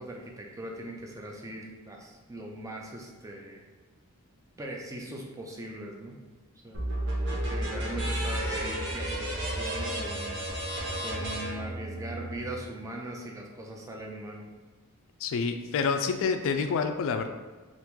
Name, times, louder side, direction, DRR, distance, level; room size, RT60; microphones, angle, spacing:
voice 1, 0.0-3.6 4.6-6.2 6.6-6.9 7.3-10.7 11.0-14.5, right 1 dB, 15° right, 0 dB, 0.4 m, -40 dB
sound 1, 6.7-12.4, right 1 dB, 55° right, 0.8 m, -32 dB
voice 2, 15.2-17.3, left 5 dB, 60° left, 7 dB, 0.3 m, -28 dB
2.9 x 2.5 x 3.5 m, 1.3 s
head